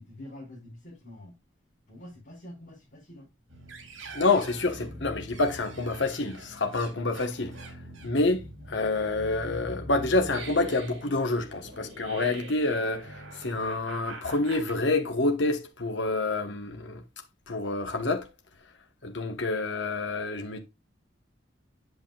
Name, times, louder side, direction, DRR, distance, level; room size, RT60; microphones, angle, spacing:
voice 1, 0.0-1.4 1.9-3.3, left 1 dB, 45° left, 4.1 m, -46 dB
sound 1, 3.5-14.7, right 1 dB, 80° right, 2.6 m, -43 dB
voice 2, 4.1-7.5 8.0-17.0 17.5-18.3 19.0-20.6, left 2 dB, 65° left, 1.2 m, -28 dB
8.4 x 7.0 x 2.3 m
head